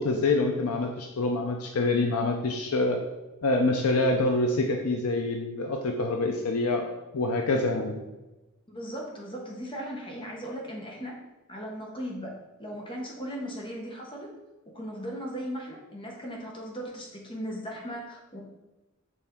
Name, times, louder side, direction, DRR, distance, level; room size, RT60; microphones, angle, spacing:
voice 1, 0.0-3.0 3.4-6.8 7.1-8.0, left 2 dB, 80° left, 3 dB, 0.6 m, -26 dB
voice 2, 8.7-11.2 11.5-12.3 12.6-14.3 14.7-18.4, equal, 25° left, 0 dB, 0.9 m, -37 dB
6.9 x 4.3 x 3.6 m, 1.1 s
head